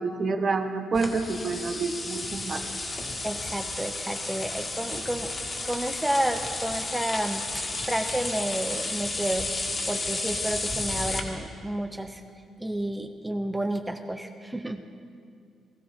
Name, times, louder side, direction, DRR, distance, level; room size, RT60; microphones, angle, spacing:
voice 1, 0.0-2.6, right 4 dB, 40° right, 6 dB, 1.1 m, -28 dB
sound 1, 0.9-11.2, left 2 dB, 30° left, 1.9 m, -32 dB
voice 2, 3.2-5.3 5.7-9.5 9.9-12.2 12.6-14.8, right 1 dB, 5° right, 6 dB, 0.6 m, -31 dB
20.0 x 14.5 x 4.4 m, 2.3 s
cardioid pair, 125°, 0 cm